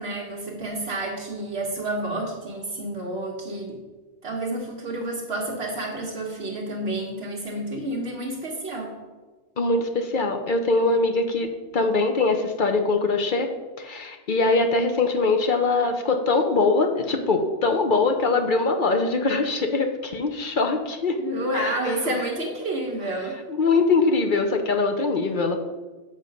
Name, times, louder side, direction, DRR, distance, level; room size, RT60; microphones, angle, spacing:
voice 1, 0.0-3.8 4.2-8.9 21.2-23.4, right 1 dB, 65° right, -2 dB, 1.3 m, -30 dB
voice 2, 9.6-11.5 11.7-13.5 13.8-21.2 21.5-22.2 23.5-25.6, left 3 dB, 50° left, 5 dB, 0.8 m, -22 dB
7.5 x 5.6 x 5.1 m, 1.3 s
omnidirectional pair, 1.2 m